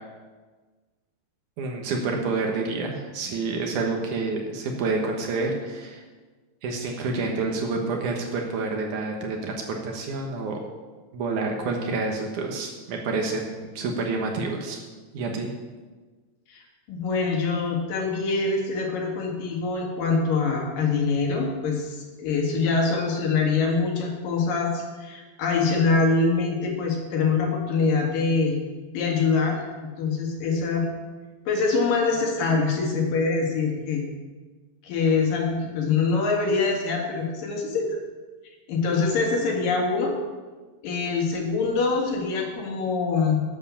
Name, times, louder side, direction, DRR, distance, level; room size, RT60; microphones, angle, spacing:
voice 1, 1.6-6.0 6.6-10.6 11.1-14.8 15.1-15.5, right 3 dB, 80° right, 2 dB, 1.7 m, -28 dB
voice 2, 16.5-28.6 28.9-29.6 30.0-30.9 31.5-34.0 34.8-38.0 38.7-40.2 40.8-43.4, left 4 dB, 55° left, 1 dB, 2.8 m, -24 dB
12.5 x 8.2 x 7.1 m, 1.3 s
omnidirectional pair, 5.5 m